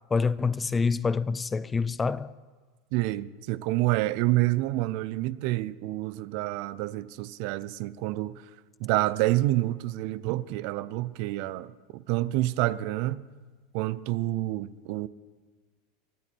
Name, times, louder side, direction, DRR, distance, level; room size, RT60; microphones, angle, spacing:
voice 1, 0.1-2.3, left 4 dB, 15° left, 0.4 m, -26 dB
voice 2, 2.9-8.4 8.8-13.2 13.7-15.1, right 17 dB, 60° right, 0.5 m, -28 dB
24.5 x 8.9 x 4.5 m
supercardioid pair, 120°, 0 cm